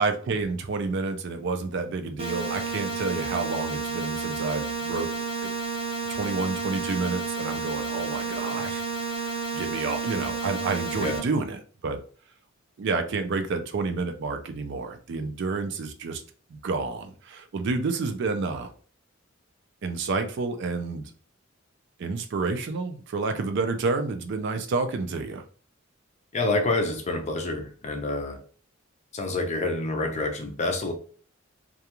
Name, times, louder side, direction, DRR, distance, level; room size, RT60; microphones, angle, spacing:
voice 1, 0.0-5.1 5.4-5.5 6.1-8.8 9.1-12.0 12.8-16.2 16.5-18.7 19.8-21.1 22.0-25.4, right 4 dB, 60° right, 0.4 m, -29 dB
sound 1, 2.2-11.2, right 4 dB, 30° right, 0.7 m, -31 dB
voice 2, 26.3-28.4 29.1-30.9, left 2 dB, 35° left, 0.5 m, -27 dB
2.4 x 2.2 x 2.9 m
head